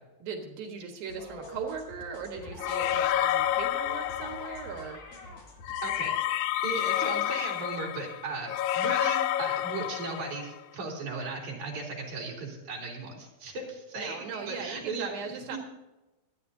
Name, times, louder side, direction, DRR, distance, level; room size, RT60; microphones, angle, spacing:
voice 1, 0.2-5.4 13.9-15.6, right 6 dB, 75° right, 3 dB, 3.2 m, -39 dB
sound 1, 1.1-6.1, left 1 dB, 45° left, 3.2 m, -46 dB
sound 2, 2.6-4.8 5.6-10.5, left 12 dB, 85° left, 1.7 m, -29 dB
voice 2, 5.8-6.1 6.6-15.1 15.5-15.6, right 3 dB, 55° right, -1 dB, 4.6 m, -37 dB
25.5 x 9.8 x 2.8 m, 1.1 s
omnidirectional pair, 4.2 m